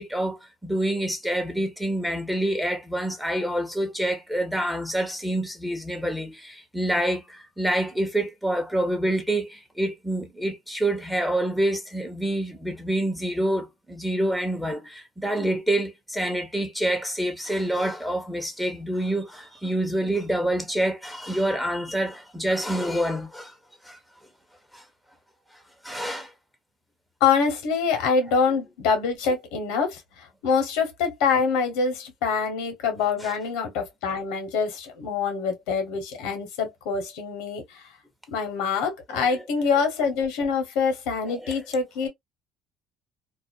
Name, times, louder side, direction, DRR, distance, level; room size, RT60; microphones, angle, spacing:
voice 1, 0.0-23.5 23.8-24.0 24.7-24.8 25.8-26.3 33.2-33.3 39.1-39.4 41.2-41.6, right 1 dB, 5° right, 0.8 m, -27 dB
voice 2, 27.2-37.9 38.3-42.1, left 5 dB, 85° left, 1.0 m, -25 dB
2.4 x 2.0 x 2.5 m
supercardioid pair, 95°, 0 cm